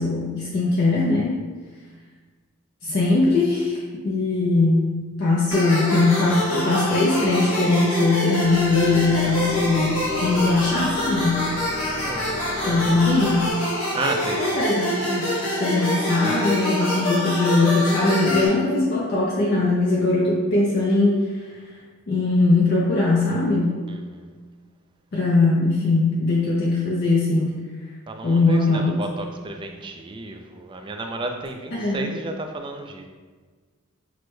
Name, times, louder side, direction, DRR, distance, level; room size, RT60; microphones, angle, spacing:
voice 1, 0.0-1.4 2.8-11.5 12.6-13.5 14.4-21.5 22.1-23.8 25.1-27.6 28.2-29.0 31.7-32.0, left 2 dB, 50° left, -5 dB, 0.5 m, -21 dB
sound 1, 5.5-18.5, left 1 dB, 70° left, 1.0 m, -26 dB
sound 2, 8.4-13.5, left 1 dB, 40° right, 1.3 m, -39 dB
voice 2, 11.9-12.3 12.6-12.9 13.9-14.6 23.9-24.4 28.1-33.1, right 2 dB, 25° right, 4 dB, 0.3 m, -32 dB
6.0 x 2.1 x 3.1 m, 1.4 s
head